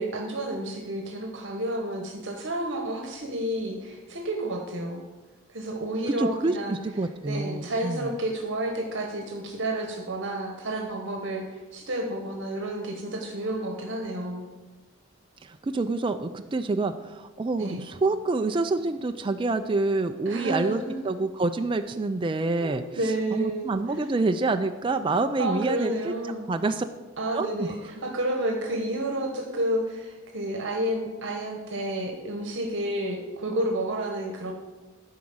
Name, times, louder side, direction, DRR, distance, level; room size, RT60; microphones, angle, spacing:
voice 1, 0.0-5.0 5.5-6.8 7.3-14.5 17.6-17.8 20.3-21.0 22.6-24.1 25.4-26.5 27.2-34.5, right 1 dB, 60° right, 2 dB, 1.2 m, -30 dB
voice 2, 6.2-8.1 15.4-22.8 23.3-26.1 26.5-26.8 27.3-27.7, right 3 dB, 25° right, 7 dB, 0.3 m, -27 dB
11.0 x 4.8 x 7.7 m, 1.2 s
head